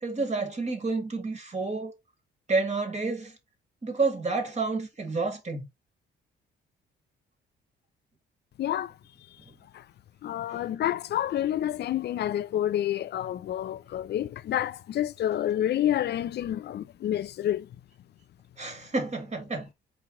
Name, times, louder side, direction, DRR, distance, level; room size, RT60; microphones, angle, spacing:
voice 1, 0.0-1.9 2.5-3.4 3.8-5.7 18.6-19.7, right 3 dB, 35° right, 2.0 m, -29 dB
voice 2, 8.6-9.0 9.3-9.4 9.7-9.9 10.2-17.8, left 11 dB, 55° left, 0.5 m, -29 dB
4.7 x 2.9 x 3.7 m
cardioid pair, 90°, 20 cm